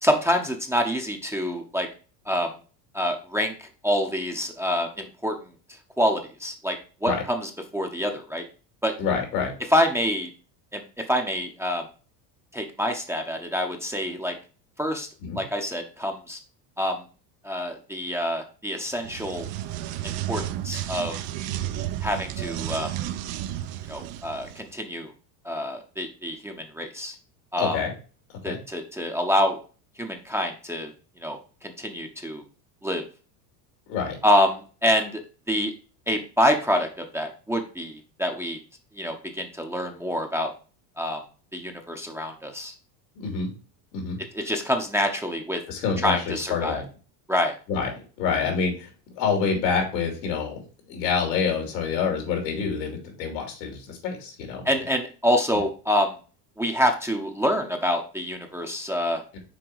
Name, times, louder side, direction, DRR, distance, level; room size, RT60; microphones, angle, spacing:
voice 1, 0.0-1.9 2.3-2.5 2.9-8.5 8.8-8.9 9.7-10.3 10.7-11.9 12.5-14.4 14.8-15.1 15.3-16.4 16.8-17.0 17.4-19.5 20.0-21.2 22.0-22.9 23.9-25.1 25.4-27.2 27.5-27.8 28.4-29.6 30.0-30.9 31.2-32.4 32.8-33.0 34.2-35.7 36.1-38.6 38.9-40.5 41.0-41.2 41.5-42.7 44.3-45.6 46.0-46.8 47.3-47.5 54.6-56.2 56.6-59.2, equal, 5° right, 3 dB, 0.8 m, -26 dB
voice 2, 9.0-9.5 15.2-15.4 27.6-27.9 28.5-28.6 33.9-34.2 43.2-43.5 43.9-44.2 45.7-46.8 47.7-48.9 49.1-54.7, left 5 dB, 85° left, 2 dB, 3.1 m, -27 dB
sound 1, 19.0-24.6, right 12 dB, 60° right, 0.8 m, -32 dB
6.3 x 4.1 x 4.7 m, 0.37 s
supercardioid pair, 110°, 50 cm